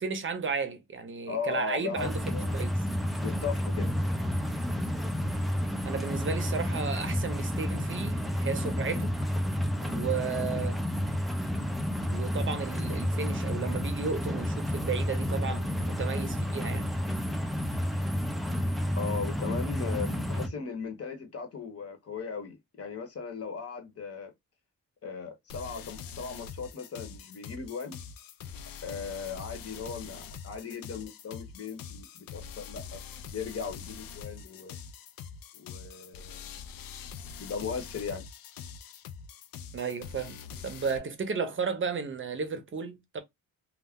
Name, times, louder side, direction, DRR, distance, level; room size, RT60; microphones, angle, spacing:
voice 1, 0.0-2.2 2.5-2.7 5.8-9.1 9.8-10.8 12.1-16.9 39.7-43.2, right 5 dB, 35° right, 0.7 m, -34 dB
voice 2, 1.3-2.5 3.2-3.9 19.0-24.3 25.0-28.0 28.8-33.0 33.3-34.8 35.5-36.5 37.4-38.2, left 5 dB, 45° left, 0.9 m, -37 dB
sound 1, 2.0-20.5, equal, ahead, 0.4 m, -30 dB
sound 2, 25.5-41.0, left 7 dB, 75° left, 0.5 m, -44 dB
2.3 x 2.1 x 3.5 m
cardioid pair, 110°, 35 cm